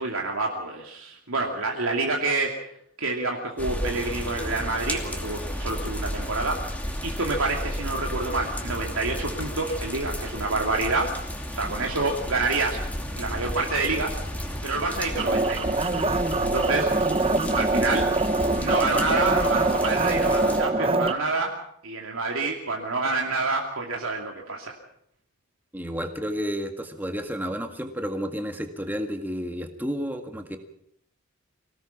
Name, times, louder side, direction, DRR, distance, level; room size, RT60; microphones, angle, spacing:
voice 1, 0.0-2.6 3.0-11.2 11.5-12.8 13.2-14.2 14.6-15.9 16.4-16.9 17.5-18.1 18.6-21.6 21.8-24.7, right 3 dB, 75° right, 0 dB, 2.6 m, -28 dB
sound 1, 3.6-20.6, equal, 5° left, 2.6 m, -33 dB
sound 2, 15.2-21.1, right 2 dB, 25° right, 1.0 m, -24 dB
voice 2, 25.7-30.6, equal, 10° right, 5 dB, 1.7 m, -31 dB
25.0 x 18.0 x 5.9 m, 0.71 s
head